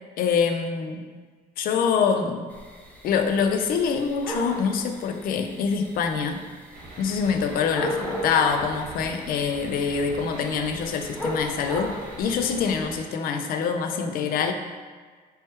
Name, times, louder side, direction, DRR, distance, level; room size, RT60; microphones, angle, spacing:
voice 1, 0.2-1.1 1.6-2.5 3.0-6.5 7.0-11.9 12.2-14.5, left 6 dB, 60° left, 6 dB, 0.4 m, -25 dB
sound 1, 2.5-12.8, equal, 10° left, 0.5 m, -36 dB
sound 2, 6.7-13.0, right 2 dB, 60° right, 0.9 m, -42 dB
3.2 x 3.0 x 3.0 m, 1.5 s
cardioid pair, 110°, 17 cm